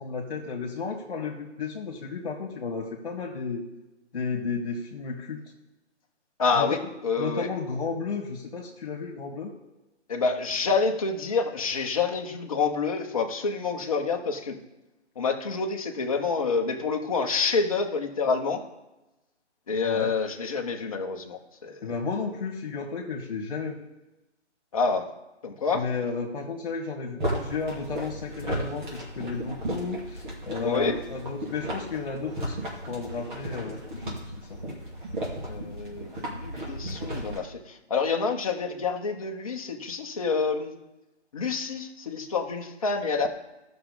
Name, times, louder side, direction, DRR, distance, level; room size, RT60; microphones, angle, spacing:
voice 1, 0.0-3.6 4.1-5.4 6.5-6.8 7.2-9.5 19.8-20.1 21.8-23.8 25.7-34.8, left 4 dB, 50° left, -2 dB, 1.7 m, -33 dB
voice 2, 6.4-7.5 10.1-14.5 15.2-18.6 19.7-21.8 24.7-25.1 25.4-25.8 30.6-31.0 35.4-40.7 41.3-43.3, left 4 dB, 30° left, 3 dB, 1.0 m, -28 dB
sound 1, 27.2-37.4, right 1 dB, 45° right, 2.6 m, -35 dB
14.0 x 5.9 x 3.9 m, 1.0 s
hypercardioid pair, 165°, 35 cm